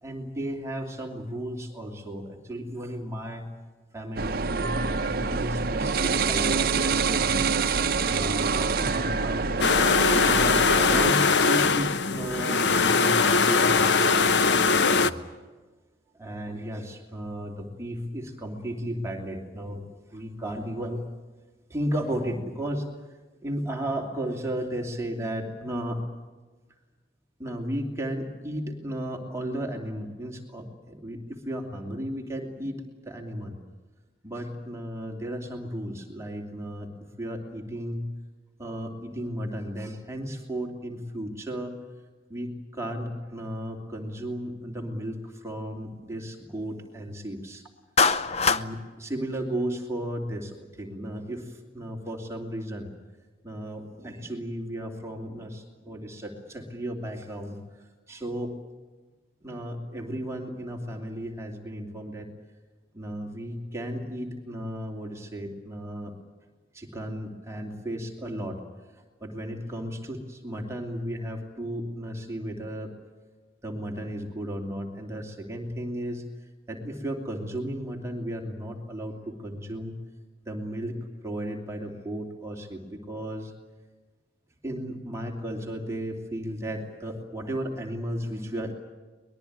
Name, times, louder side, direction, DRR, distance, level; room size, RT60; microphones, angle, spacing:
voice 1, 0.0-3.5 3.9-7.5 7.7-9.6 10.1-15.2 16.1-21.0 21.7-22.9 23.4-26.0 27.4-33.6 34.2-36.9 37.2-38.1 38.6-41.7 42.3-47.6 48.4-52.9 53.4-58.5 59.4-62.3 62.9-66.1 66.7-68.6 69.2-72.9 73.6-76.2 76.7-80.0 80.4-81.0 81.2-83.5 84.6-88.7, equal, 15° right, 1 dB, 2.8 m, -34 dB
sound 1, 4.2-11.1, right 4 dB, 55° right, 0.8 m, -26 dB
sound 2, 9.6-15.1, left 4 dB, 65° left, 0.8 m, -21 dB
Clapping, 48.0-48.7, left 5 dB, 35° left, 0.7 m, -22 dB
23.5 x 20.5 x 9.5 m, 1.3 s
head